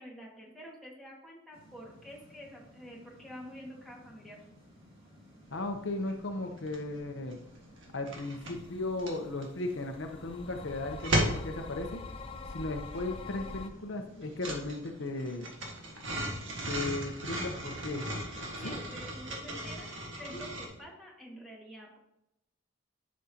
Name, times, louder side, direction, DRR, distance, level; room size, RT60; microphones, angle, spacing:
voice 1, 0.0-4.4 18.6-22.0, equal, ahead, -4 dB, 1.8 m, -48 dB
sound 1, 1.5-20.8, equal, 25° right, 2.4 m, -57 dB
voice 2, 5.5-7.4 7.9-12.0 12.5-15.5 16.7-18.1 18.6-18.7, left 2 dB, 65° left, 5 dB, 0.8 m, -36 dB
sound 2, 5.6-5.7 6.0-7.0 7.2-20.7, right 1 dB, 70° right, 1.7 m, -36 dB
sound 3, 8.4-13.7, left 3 dB, 25° left, 0.5 m, -45 dB
10.5 x 6.3 x 2.9 m, 0.85 s
head